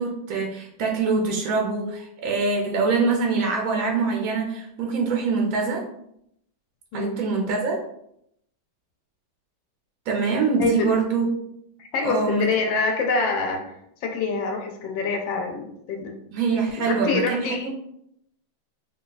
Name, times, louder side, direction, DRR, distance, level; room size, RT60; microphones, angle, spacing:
voice 1, 0.0-5.8 6.9-7.8 10.1-11.2 12.0-12.5 16.3-17.7, right 4 dB, 70° right, 0 dB, 0.8 m, -24 dB
voice 2, 11.8-13.7 14.0-16.1 16.9-17.7, left 4 dB, 80° left, 3 dB, 1.4 m, -25 dB
3.5 x 2.3 x 3.8 m, 0.75 s
omnidirectional pair, 2.1 m